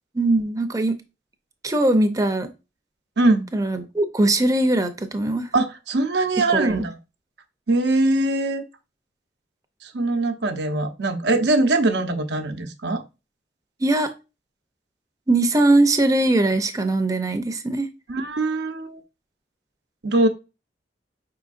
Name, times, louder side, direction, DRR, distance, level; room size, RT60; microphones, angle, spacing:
voice 1, 0.1-1.0 1.6-2.5 3.5-5.5 6.5-6.9 13.8-14.1 15.3-17.9, right 2 dB, 20° right, 0.6 m, -20 dB
voice 2, 3.2-3.5 5.5-6.9 7.7-8.6 9.8-13.0 18.1-19.0 20.0-20.3, right 2 dB, 80° right, 0.8 m, -22 dB
5.4 x 3.9 x 2.5 m
head